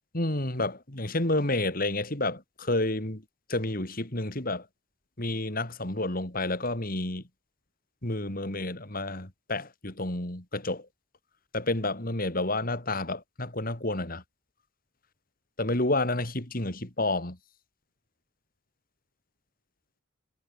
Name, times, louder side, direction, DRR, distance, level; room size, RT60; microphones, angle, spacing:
voice 1, 0.1-3.2 3.5-4.7 5.2-7.2 8.0-10.9 11.5-14.2 15.6-17.4, left 2 dB, 45° left, 3.2 m, -30 dB
head